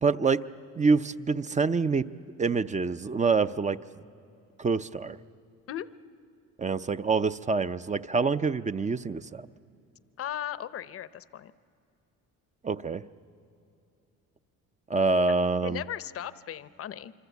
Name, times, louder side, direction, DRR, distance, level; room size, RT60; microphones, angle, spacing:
voice 1, 0.0-0.4 0.7-2.0 2.4-3.8 4.6-5.2 6.6-9.5 12.6-13.0 14.9-15.8, right 4 dB, 20° right, 11 dB, 0.6 m, -26 dB
voice 2, 10.2-11.5 15.2-15.3 15.6-17.1, left 10 dB, 45° left, 16 dB, 0.8 m, -37 dB
26.0 x 25.0 x 8.2 m, 2.6 s
cardioid pair, 90°, 33 cm